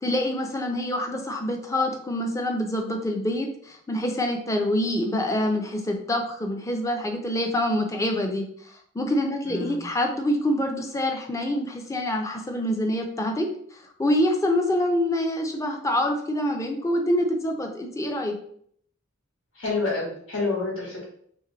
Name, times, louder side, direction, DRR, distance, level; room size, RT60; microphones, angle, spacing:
voice 1, 0.0-8.4 8.9-13.5 14.0-18.3, left 1 dB, 15° left, 3 dB, 0.5 m, -26 dB
voice 2, 9.4-9.8 19.5-21.0, left 3 dB, 80° left, -4 dB, 1.4 m, -28 dB
3.0 x 2.9 x 3.9 m, 0.65 s
head